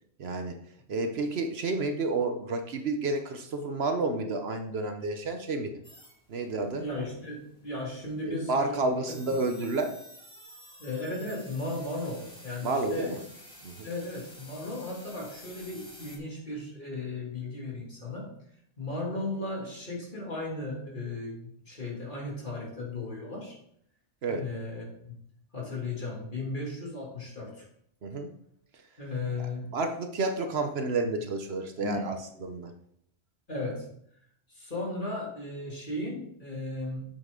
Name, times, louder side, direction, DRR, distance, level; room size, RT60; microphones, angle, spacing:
voice 1, 0.2-0.6 0.9-5.8 6.3-6.9 8.2-10.0 12.6-13.2 13.6-13.9 24.2-24.4 28.0-28.3 29.4-32.7, right 3 dB, 60° right, 6 dB, 1.0 m, -30 dB
sound 1, 5.8-16.2, equal, 5° left, 2.3 m, -51 dB
voice 2, 6.8-9.4 10.8-13.1 13.8-18.3 18.8-23.6 24.3-25.2 25.5-27.7 29.0-29.7 31.8-32.1 33.5-33.9 34.5-37.0, left 2 dB, 45° left, -3 dB, 2.7 m, -36 dB
8.2 x 7.5 x 3.7 m, 0.69 s
omnidirectional pair, 1.2 m